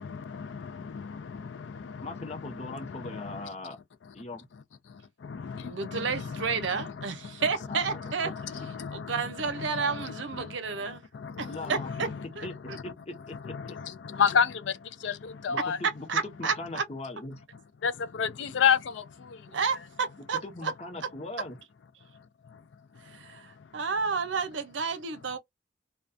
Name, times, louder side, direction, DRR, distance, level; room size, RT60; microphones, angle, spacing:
voice 1, 0.0-3.5 4.9-7.4 7.9-8.0 8.3-12.2 12.7-12.9 13.4-15.8 17.8-19.6 22.5-22.6 23.0-23.7, left 7 dB, 80° left, 0.4 m, -32 dB
voice 2, 2.0-3.8 4.1-4.5 7.6-8.3 11.5-11.9 12.4-12.5 12.8-13.8 15.5-17.4 20.4-21.6, left 2 dB, 35° left, 0.7 m, -40 dB
voice 3, 5.6-8.3 8.9-11.0 11.4-12.1 12.4-12.8 16.1-16.8 19.5-20.7 23.1-25.4, right 5 dB, 80° right, 0.6 m, -31 dB
2.2 x 2.2 x 2.5 m
head